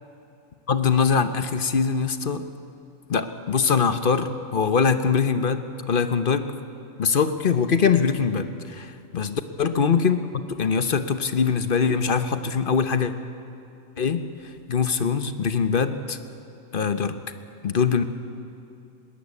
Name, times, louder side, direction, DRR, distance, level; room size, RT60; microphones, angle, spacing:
voice 1, 0.7-2.5 3.1-6.5 7.0-13.1 14.0-14.3 14.7-16.2 16.7-17.2 17.6-18.0, left 6 dB, 45° left, 10 dB, 1.0 m, -23 dB
21.0 x 18.5 x 8.4 m, 2.7 s
omnidirectional pair, 1.4 m